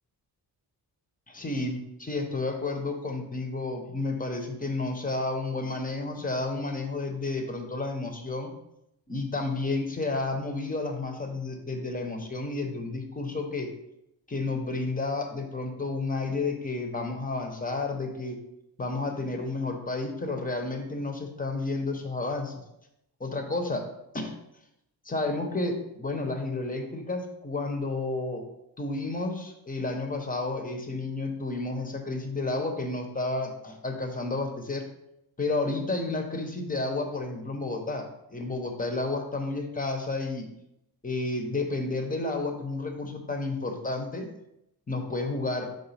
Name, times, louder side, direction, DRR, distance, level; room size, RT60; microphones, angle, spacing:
voice 1, 1.3-8.5 9.1-13.7 14.3-18.4 18.8-22.6 23.2-23.9 24.1-24.4 25.0-28.4 28.8-34.8 35.4-40.5 41.0-44.3 44.9-45.7, left 3 dB, 20° left, 4 dB, 0.8 m, -31 dB
5.0 x 3.7 x 5.6 m, 0.83 s
wide cardioid pair, 155°, 38 cm